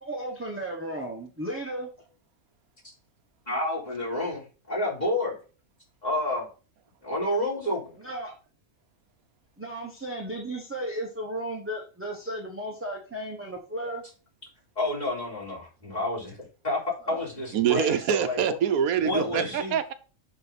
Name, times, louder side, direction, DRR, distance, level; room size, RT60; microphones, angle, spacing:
voice 1, 0.0-1.9 8.0-8.3 9.6-14.0 17.0-17.2 19.0-19.6, right 1 dB, 10° right, 1.0 m, -35 dB
voice 2, 3.5-5.4 6.0-6.5 7.0-8.0 14.8-18.6 19.0-19.8, left 1 dB, 30° left, 4.2 m, -29 dB
voice 3, 17.5-19.9, right 9 dB, 85° right, 1.2 m, -25 dB
10.5 x 4.0 x 4.1 m
omnidirectional pair, 1.5 m